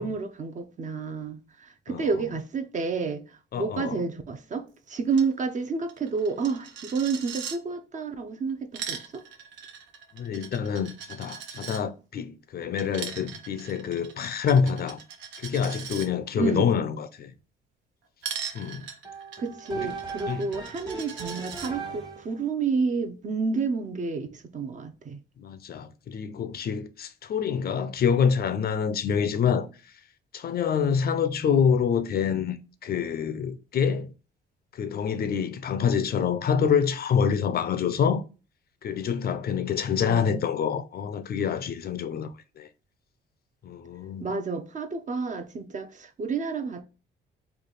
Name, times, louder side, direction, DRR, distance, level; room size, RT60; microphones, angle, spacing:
voice 1, 0.0-3.2 3.6-9.2 16.4-16.6 19.4-25.2 40.0-40.4 44.2-46.8, right 4 dB, 40° right, 0.6 m, -30 dB
voice 2, 3.5-4.0 10.1-15.0 15.4-17.3 18.5-18.9 19.8-20.0 20.3-20.5 25.4-29.7 30.3-34.1 34.7-38.2 38.8-42.7 43.6-44.3, left 7 dB, 50° left, 0.5 m, -26 dB
Coin (dropping), 5.1-5.3 5.6-5.7 5.9-7.6 8.5-11.8 12.8-16.1 18.2-21.7, right 7 dB, 75° right, 0.7 m, -40 dB
sound 1, 19.0-22.4, right 5 dB, 20° right, 1.0 m, -38 dB
3.3 x 2.4 x 3.8 m
cardioid pair, 90°, 20 cm